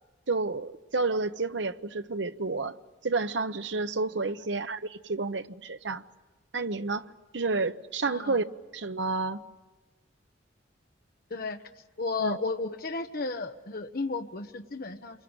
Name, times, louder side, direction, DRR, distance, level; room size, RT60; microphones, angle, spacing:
voice 1, 0.3-2.8 3.0-6.0 6.5-7.1 7.3-8.4 8.7-9.4 12.2-12.4, right 3 dB, 70° right, 0.9 m, -30 dB
voice 2, 8.1-8.4 11.3-11.6 12.0-15.2, left 3 dB, 50° left, 1.1 m, -33 dB
28.0 x 23.0 x 8.9 m
head